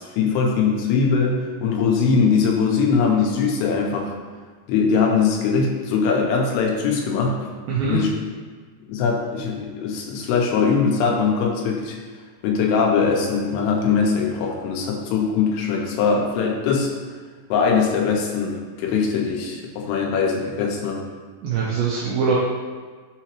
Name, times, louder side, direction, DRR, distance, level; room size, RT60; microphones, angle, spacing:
voice 1, 0.0-4.1 4.7-7.4 7.8-8.1 8.9-12.0 12.4-16.9 17.5-21.0, left 5 dB, 90° left, -1 dB, 2.8 m, -21 dB
voice 2, 7.7-8.0 21.4-22.4, right 5 dB, 80° right, -6 dB, 2.2 m, -22 dB
6.3 x 2.9 x 2.9 m, 1.5 s
omnidirectional pair, 4.6 m